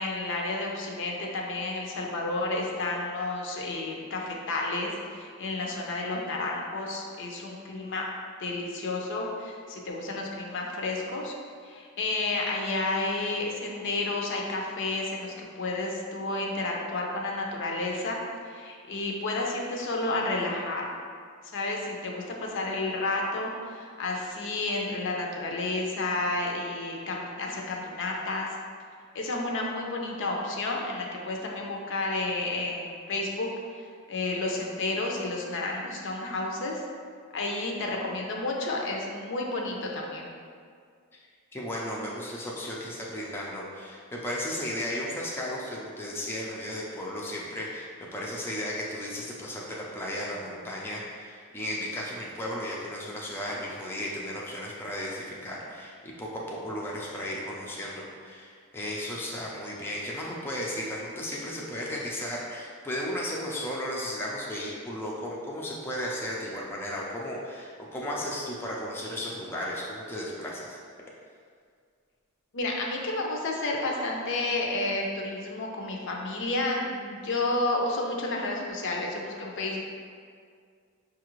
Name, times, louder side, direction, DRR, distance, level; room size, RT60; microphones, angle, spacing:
voice 1, 0.0-8.1 8.4-11.3 11.6-18.2 18.5-20.9 21.5-28.5 29.1-33.5 33.7-36.8 37.3-40.3 72.5-79.8, left 2 dB, 60° left, 0 dB, 0.5 m, -31 dB
voice 2, 41.5-70.8, left 1 dB, 10° left, -4 dB, 0.4 m, -35 dB
5.3 x 2.4 x 3.0 m, 2.1 s
head